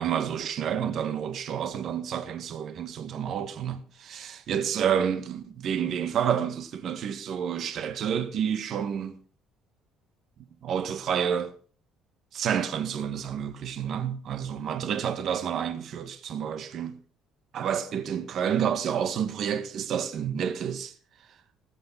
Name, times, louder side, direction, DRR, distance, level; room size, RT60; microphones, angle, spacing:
voice 1, 0.0-9.2 10.6-11.5 12.3-17.0 17.5-20.9, right 8 dB, 50° right, 1.9 m, -29 dB
19.0 x 8.7 x 5.9 m
cardioid pair, 145°, 0 cm